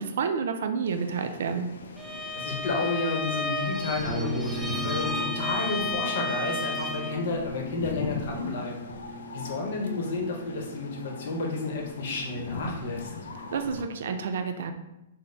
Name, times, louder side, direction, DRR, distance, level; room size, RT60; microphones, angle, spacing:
voice 1, 0.0-1.7 13.5-14.7, right 5 dB, 70° right, 7 dB, 0.4 m, -29 dB
sound 1, 0.8-13.8, left 3 dB, 80° left, 0.4 m, -41 dB
Bowed string instrument, 2.0-7.2, left 2 dB, ahead, 0.3 m, -33 dB
voice 2, 2.3-8.9 9.3-13.1, left 3 dB, 60° left, 1 dB, 0.9 m, -31 dB
sound 2, 4.1-13.7, right 2 dB, 35° right, 0.9 m, -40 dB
4.1 x 2.1 x 3.3 m, 0.92 s
hypercardioid pair, 145°, 0 cm